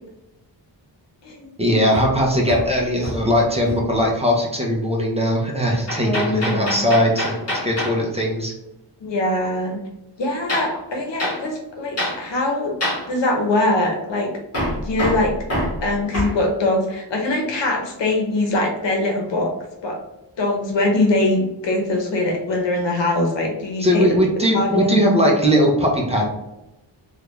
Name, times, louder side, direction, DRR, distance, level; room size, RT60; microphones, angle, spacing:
voice 1, 1.6-7.3 7.6-8.5 23.8-26.3, equal, 15° right, -2 dB, 0.6 m, -19 dB
Hammer, 1.9-3.4 3.7-4.0 5.9-8.0 10.5-10.7 11.2-11.4 12.0-12.2 12.8-13.1 14.5-16.4, equal, 35° left, 1.4 m, -26 dB
voice 2, 6.0-6.8 9.0-9.8 10.2-12.7 13.1-14.3 14.8-15.3 15.8-19.5 19.8-20.0 20.4-24.1 24.5-25.0, left 2 dB, 75° left, 1 dB, 0.9 m, -22 dB
3.3 x 2.4 x 3.0 m, 0.92 s
wide cardioid pair, 120°, 43 cm